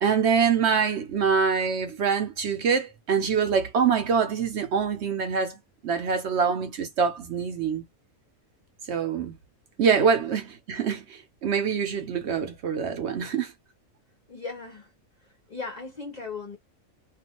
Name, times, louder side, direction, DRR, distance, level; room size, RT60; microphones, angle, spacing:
voice 1, 0.0-5.6 5.8-7.9 8.9-9.4 9.8-13.5, right 6 dB, 60° right, 0.9 m, -25 dB
voice 2, 14.3-14.9 15.5-16.6, left 4 dB, 45° left, 0.6 m, -37 dB
2.4 x 2.3 x 2.9 m
omnidirectional pair, 1.4 m